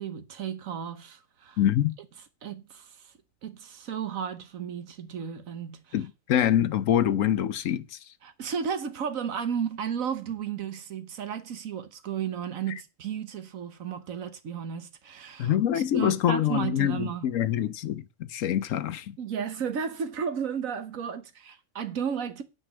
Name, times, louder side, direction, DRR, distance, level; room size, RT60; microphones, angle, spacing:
voice 1, 0.0-1.6 2.4-3.1 3.4-5.9 8.2-17.2 19.2-22.4, right 7 dB, 80° right, 1.5 m, -34 dB
voice 2, 1.6-2.0 5.9-8.0 15.4-19.1, left 10 dB, 75° left, 1.1 m, -25 dB
9.2 x 5.3 x 7.7 m
omnidirectional pair, 1.4 m